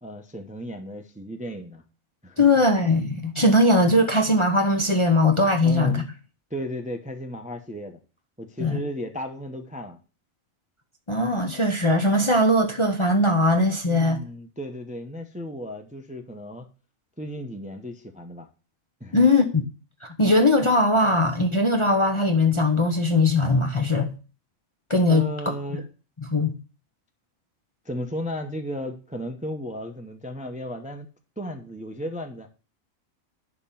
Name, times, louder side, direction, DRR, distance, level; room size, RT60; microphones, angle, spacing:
voice 1, 0.0-1.8 2.2-2.6 5.6-6.1 6.5-8.0 8.4-10.0 13.9-16.7 17.2-18.5 19.0-19.3 25.1-25.9 27.8-31.1 31.4-32.5, equal, 5° right, 0.7 m, -34 dB
voice 2, 2.4-6.0 8.6-8.8 11.1-14.2 19.1-19.6 20.0-24.1 24.9-25.3 26.2-26.5, left 2 dB, 25° left, 0.8 m, -20 dB
11.0 x 3.8 x 7.4 m
omnidirectional pair, 1.5 m